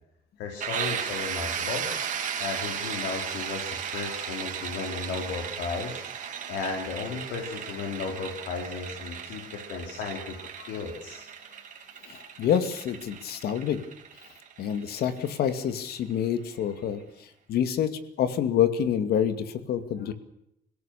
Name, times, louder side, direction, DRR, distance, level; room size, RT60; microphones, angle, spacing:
voice 1, 0.4-1.9 2.4-10.3 10.7-11.2, left 5 dB, 85° left, 1 dB, 4.7 m, -35 dB
sound 1, 0.6-16.2, right 8 dB, 50° right, 3.3 m, -36 dB
voice 2, 12.1-13.8 14.6-17.0 17.5-20.1, left 9 dB, 65° left, 10 dB, 2.3 m, -27 dB
25.0 x 17.5 x 6.8 m, 0.78 s
cardioid pair, 110°, 17 cm